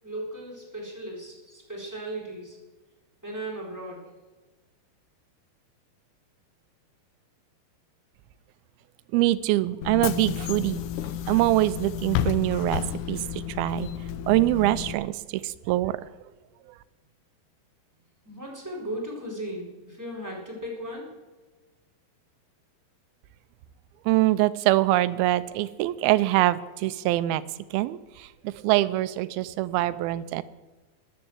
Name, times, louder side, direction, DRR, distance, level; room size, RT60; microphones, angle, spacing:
voice 1, 0.0-2.6 3.2-4.1 18.2-21.1, right 1 dB, 5° right, -2 dB, 3.9 m, -36 dB
voice 2, 9.1-10.8 11.3-13.9 14.3-16.1 24.1-27.4 27.7-30.4, right 16 dB, 85° right, 15 dB, 2.4 m, -24 dB
Bus / Engine, 9.8-14.9, left 10 dB, 85° left, 1.7 m, -31 dB
13.0 x 10.0 x 7.2 m, 1.2 s
omnidirectional pair, 4.4 m